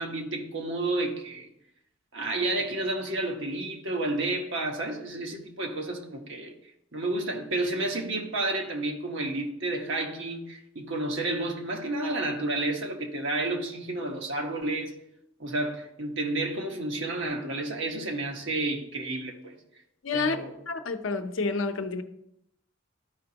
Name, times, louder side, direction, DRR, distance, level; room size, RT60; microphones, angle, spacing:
voice 1, 0.0-1.5 2.1-6.5 6.9-14.9 15.4-19.5 20.1-20.5, right 2 dB, 65° right, 1.3 m, -31 dB
voice 2, 20.0-20.4 20.7-22.0, left 4 dB, 75° left, 0.7 m, -29 dB
12.5 x 5.2 x 2.9 m
head